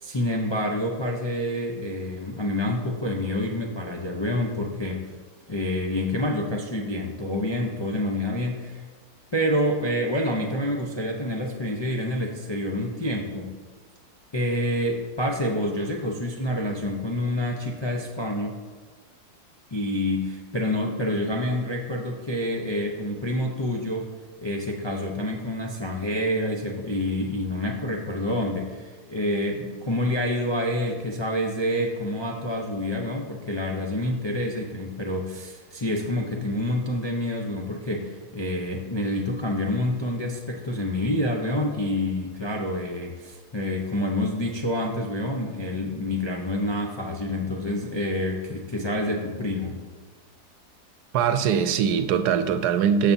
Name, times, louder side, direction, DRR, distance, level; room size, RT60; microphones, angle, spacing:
voice 1, 0.0-5.1 5.5-8.8 9.3-13.5 14.3-18.6 19.7-24.1 24.4-49.8, left 1 dB, 45° left, 0 dB, 0.3 m, -27 dB
voice 2, 51.1-53.1, right 7 dB, 90° right, 10 dB, 1.2 m, -22 dB
12.5 x 6.6 x 2.7 m, 1.4 s
omnidirectional pair, 1.7 m